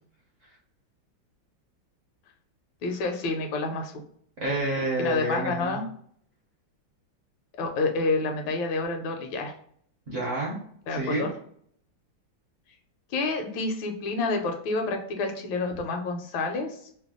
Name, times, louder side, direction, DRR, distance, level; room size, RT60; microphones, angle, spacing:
voice 1, 2.8-3.9 5.0-5.9 7.6-9.5 10.9-11.3 13.1-16.8, left 3 dB, 80° left, 4 dB, 1.4 m, -28 dB
voice 2, 4.4-5.8 10.1-10.6 10.9-11.3, right 1 dB, 50° right, -4 dB, 1.0 m, -28 dB
3.3 x 2.2 x 3.6 m, 0.63 s
omnidirectional pair, 2.1 m